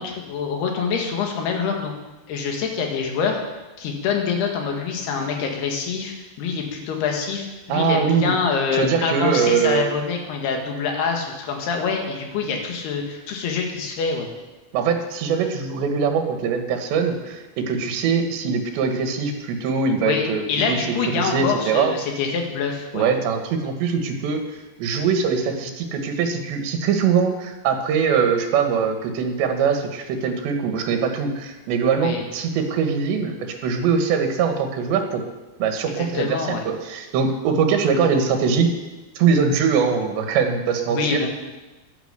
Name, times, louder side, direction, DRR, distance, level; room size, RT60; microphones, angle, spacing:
voice 1, 0.0-1.9 2.3-3.4 3.8-14.3 20.0-23.1 32.0-32.3 36.0-36.6 40.9-41.3, left 5 dB, 70° left, 2 dB, 3.6 m, -25 dB
voice 2, 7.7-8.3 8.7-9.8 14.7-21.9 22.9-24.4 24.8-35.3 35.6-38.7 39.2-41.3, right 6 dB, 80° right, 5 dB, 3.6 m, -22 dB
11.0 x 10.5 x 6.7 m, 1.1 s
omnidirectional pair, 5.1 m